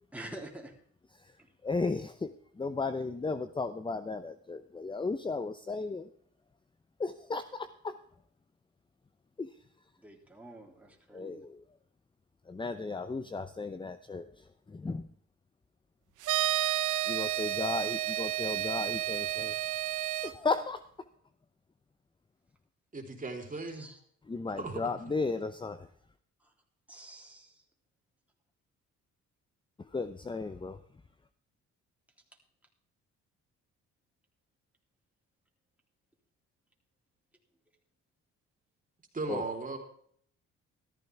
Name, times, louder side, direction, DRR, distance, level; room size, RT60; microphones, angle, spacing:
voice 1, 0.1-0.7 1.4-1.5 10.0-11.4 23.7-24.0 26.4-26.5 26.9-27.6, right 1 dB, 5° right, 0 dB, 3.4 m, -47 dB
voice 2, 1.6-6.1 7.0-8.0 9.4-9.5 11.1-11.6 12.5-14.3 14.7-15.1 17.1-19.5 20.2-20.8 24.3-25.9 29.9-30.8 39.3-39.4, left 3 dB, 15° left, 12 dB, 0.7 m, -35 dB
sound 1, 16.2-20.3, right 14 dB, 85° right, 0.8 m, -31 dB
voice 3, 22.9-23.9 24.6-24.9 39.1-39.8, right 3 dB, 25° right, 3 dB, 3.7 m, -36 dB
14.0 x 14.0 x 3.5 m, 0.63 s
cardioid pair, 90°, 30 cm